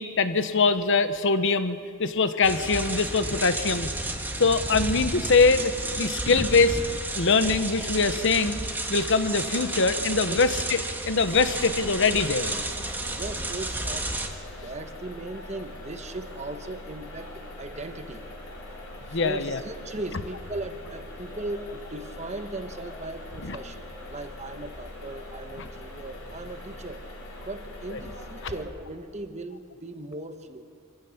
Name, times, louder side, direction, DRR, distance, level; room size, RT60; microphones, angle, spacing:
voice 1, 0.0-3.9 4.4-8.6 8.9-12.9 19.1-19.6 23.4-23.6 27.9-28.0 28.4-28.5, left 4 dB, 65° left, 10 dB, 1.1 m, -23 dB
sound 1, 2.4-14.3, right 2 dB, 10° right, 1.5 m, -32 dB
sound 2, 11.2-28.6, left 1 dB, 90° left, 4.6 m, -42 dB
voice 2, 13.2-14.1 14.6-18.3 19.1-27.0 27.4-30.6, right 2 dB, 35° right, 7 dB, 1.2 m, -38 dB
26.0 x 15.5 x 7.2 m, 2.4 s
head